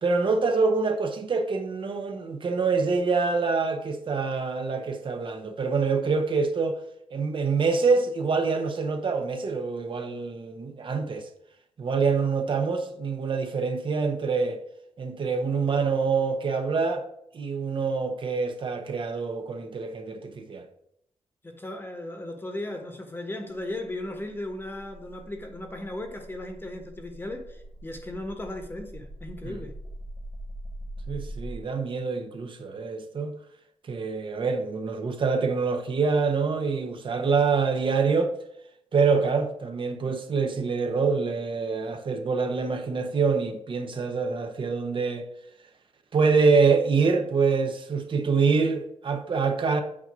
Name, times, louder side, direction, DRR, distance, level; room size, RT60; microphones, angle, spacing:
voice 1, 0.0-6.8 7.1-11.3 11.8-14.6 15.0-17.0 17.3-20.7 29.4-29.6 31.1-33.4 33.9-38.3 38.9-45.3 46.1-49.8, right 4 dB, 50° right, 1.0 m, -25 dB
voice 2, 21.4-29.7, left 1 dB, 20° left, 1.2 m, -36 dB
sound 1, 23.5-31.6, right 1 dB, 20° right, 1.2 m, -42 dB
8.6 x 2.9 x 6.1 m
cardioid pair, 105°, 11 cm